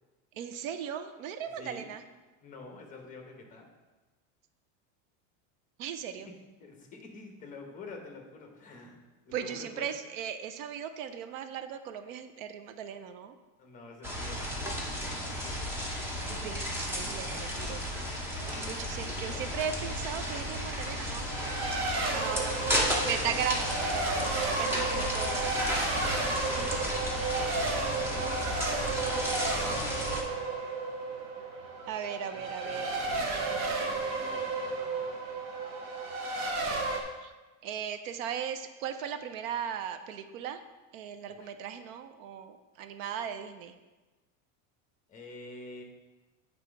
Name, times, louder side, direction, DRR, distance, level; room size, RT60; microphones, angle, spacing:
voice 1, 0.3-2.0 5.8-6.3 9.3-13.4 16.3-17.8 18.7-21.3 22.1-22.6 23.0-25.8 31.9-34.0 37.2-37.3 37.6-40.6 40.9-43.7, right 8 dB, 85° right, 10 dB, 0.7 m, -37 dB
voice 2, 1.5-1.9 2.4-3.7 6.2-9.0 9.2-9.9 13.6-15.0 15.6-15.7 18.5-19.5 21.8-23.5 24.7-24.9 25.3-28.3 29.3-29.8 32.3-35.2 41.3-41.5 45.1-45.8, left 3 dB, 20° left, 2 dB, 0.9 m, -48 dB
sound 1, 14.0-30.2, equal, 5° right, 0.7 m, -33 dB
Race car auto racing, 21.3-37.0, right 3 dB, 40° right, 1.0 m, -33 dB
8.3 x 3.4 x 5.0 m, 1.2 s
cardioid pair, 165°, 39 cm